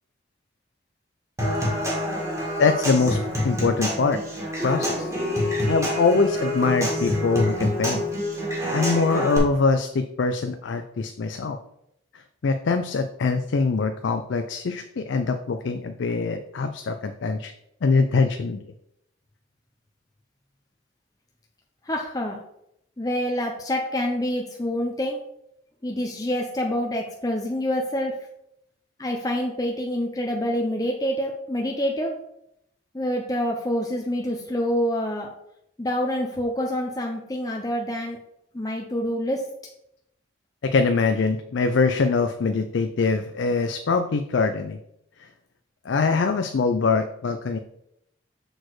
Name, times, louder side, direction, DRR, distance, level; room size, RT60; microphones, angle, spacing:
Human voice / Acoustic guitar / Percussion, 1.4-9.4, equal, 15° right, 1.7 m, -26 dB
voice 1, 2.6-3.2 3.4-4.2 4.6-5.1 5.7-8.0 8.7-11.6 12.1-17.5 17.8-18.6 40.7-44.8 45.2-45.3 45.9-47.6, left 4 dB, 75° left, 7 dB, 0.4 m, -23 dB
voice 2, 21.8-22.4 23.0-25.2 25.8-28.1 29.0-32.1 32.9-35.3 35.8-38.2 38.5-39.4, equal, 20° left, 1 dB, 0.6 m, -26 dB
6.4 x 4.2 x 4.7 m, 0.78 s
head